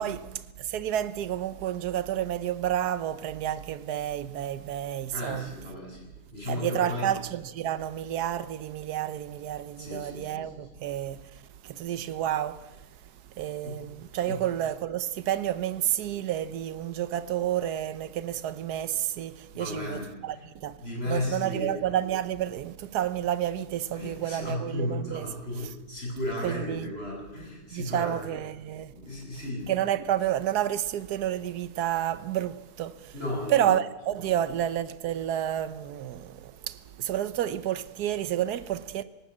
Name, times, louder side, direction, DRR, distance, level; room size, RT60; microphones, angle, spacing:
voice 1, 0.0-5.5 6.5-12.9 13.4-20.8 21.1-25.3 26.4-26.9 27.7-28.9 29.7-33.1 33.5-39.0, right 11 dB, 80° right, 1.4 m, -30 dB
voice 2, 5.1-7.1 9.8-10.7 13.6-13.8 14.3-14.4 19.5-20.4 20.8-21.8 24.0-28.4 28.9-29.9 33.1-33.8 34.2-34.3, left 1 dB, 40° left, 8.2 m, -35 dB
19.5 x 17.5 x 8.6 m
omnidirectional pair, 1.7 m